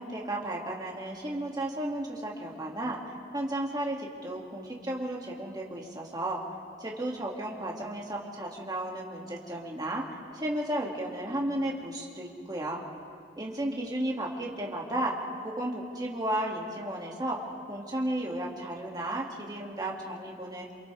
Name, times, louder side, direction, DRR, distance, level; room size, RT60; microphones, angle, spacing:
voice 1, 0.0-6.4 6.8-10.0 10.3-12.8 13.3-20.7, right 1 dB, 20° right, -2 dB, 2.5 m, -34 dB
28.0 x 27.5 x 3.5 m, 2.4 s
head